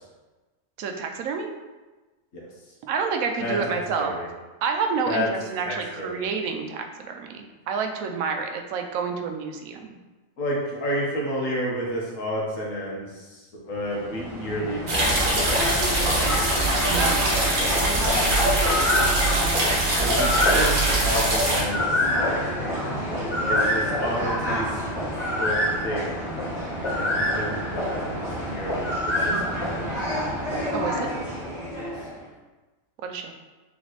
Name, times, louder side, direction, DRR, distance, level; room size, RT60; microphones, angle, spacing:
voice 1, 0.8-1.5 2.8-4.1 4.6-10.0 16.9-17.3 29.3-29.6 30.7-31.1 33.0-33.3, right 5 dB, 85° right, 4 dB, 1.0 m, -29 dB
voice 2, 3.4-4.3 5.1-5.3 5.6-6.2 10.4-16.5 20.0-21.8 22.1-22.3 23.5-24.9 25.4-26.2 26.9-28.9 29.2-29.9 31.8-31.9, equal, 70° left, -4 dB, 1.5 m, -31 dB
sound 1, 13.8-32.2, left 1 dB, 50° left, 2.0 m, -27 dB
sound 2, 14.9-21.6, right 1 dB, 40° right, 1.0 m, -22 dB
3.9 x 3.3 x 3.9 m, 1.2 s
omnidirectional pair, 1.4 m